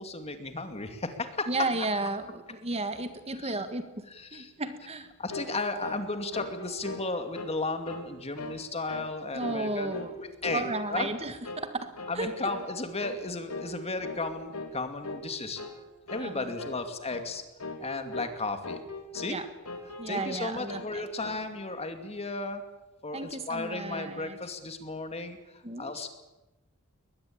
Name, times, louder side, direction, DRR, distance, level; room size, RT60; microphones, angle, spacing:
voice 1, 0.0-1.5 3.4-3.5 4.1-4.5 5.2-10.6 10.9-11.1 12.1-15.6 16.1-17.4 17.8-18.8 19.1-19.4 20.1-22.6 23.0-26.1, left 3 dB, 30° left, 7 dB, 2.5 m, -34 dB
voice 2, 1.5-3.9 4.3-5.1 9.3-10.1 10.5-11.9 12.1-12.3 16.2-16.5 19.3-19.5 20.0-21.0 23.1-24.4 25.6-26.1, right 2 dB, 30° right, 9 dB, 1.6 m, -33 dB
sound 1, 5.3-5.5 5.8-6.0 6.3-7.5 7.8-8.1 8.4-8.6 8.9-9.1 9.4-10.2 10.4-11.2 11.4-11.7 12.0-12.2 12.5-12.7 13.0-13.2 13.5-13.7 14.0-14.2 14.5-14.7 15.0-15.3 15.6-15.7 16.1-16.3 16.6-16.8 17.1-17.3 17.6-18.3 18.6-19.4 19.6-20.4 20.7-21.4, left 2 dB, 80° left, 3.4 m, -39 dB
22.0 x 20.5 x 8.8 m, 1.0 s
head